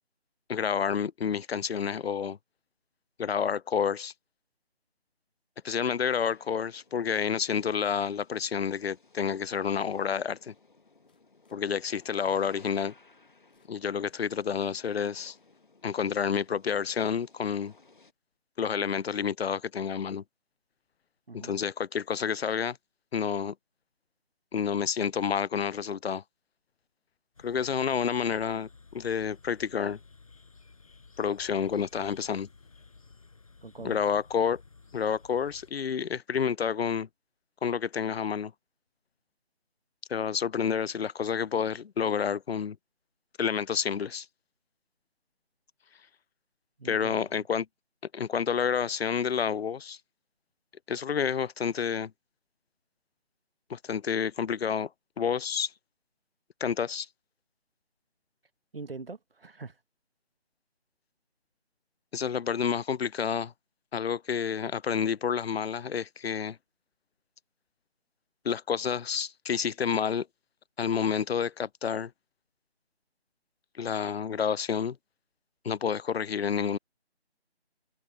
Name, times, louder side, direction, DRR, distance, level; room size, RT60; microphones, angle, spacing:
voice 1, 0.5-2.4 3.2-4.1 5.6-10.5 11.5-12.9 13.7-15.3 15.8-17.7 18.6-20.2 21.3-22.8 23.1-23.5 24.5-26.2 27.4-30.0 31.2-32.5 33.8-34.6 34.9-37.1 37.6-38.5 40.1-42.8 43.4-44.3 46.8-47.7 48.1-50.0 50.9-52.1 53.7-54.9 55.2-55.7 56.6-57.1 62.1-63.5 63.9-66.6 68.4-70.3 70.8-72.1 73.8-75.0 75.6-76.8, left 7 dB, 65° left, 0.5 m, -29 dB
sound 1, 6.1-18.1, left 3 dB, 45° left, 1.5 m, -60 dB
sound 2, 9.0-9.1 10.0-10.4 10.9-11.6 11.9-12.0 12.2-12.3 13.1-14.6 15.2-16.2 16.4-16.7, left 7 dB, 10° left, 2.2 m, -78 dB
sound 3, 27.3-35.7, left 4 dB, 30° left, 5.9 m, -55 dB
voice 2, 33.6-34.0 46.8-47.1 58.7-59.8, right 3 dB, 60° right, 1.6 m, -42 dB
figure-of-eight pair, 180°, 33 cm